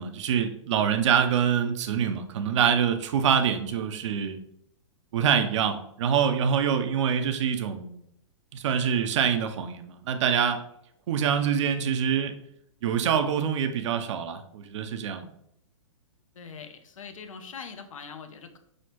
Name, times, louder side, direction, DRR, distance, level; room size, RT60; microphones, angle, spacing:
voice 1, 0.0-4.4 5.1-8.0 8.5-10.6 11.1-12.3 12.8-15.3, right 8 dB, 65° right, 8 dB, 0.5 m, -25 dB
voice 2, 16.3-18.6, left 6 dB, 85° left, 7 dB, 0.6 m, -42 dB
6.3 x 2.1 x 2.9 m, 0.73 s
hypercardioid pair, 130°, 17 cm